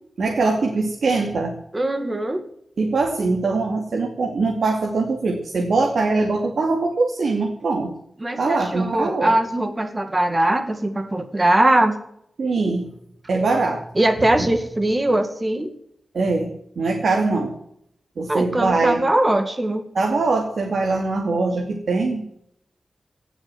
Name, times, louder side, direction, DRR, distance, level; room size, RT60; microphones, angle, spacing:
voice 1, 0.2-1.6 2.8-7.9 8.4-9.3 12.4-12.9 13.3-13.8 16.1-17.5 18.2-19.0 19.9-22.2, right 3 dB, 75° right, 1 dB, 2.7 m, -22 dB
voice 2, 1.7-2.4 8.2-12.0 14.0-15.7 18.3-19.9, right 1 dB, 20° right, 8 dB, 2.2 m, -21 dB
18.0 x 7.1 x 9.3 m, 0.71 s
wide cardioid pair, 140°, 0 cm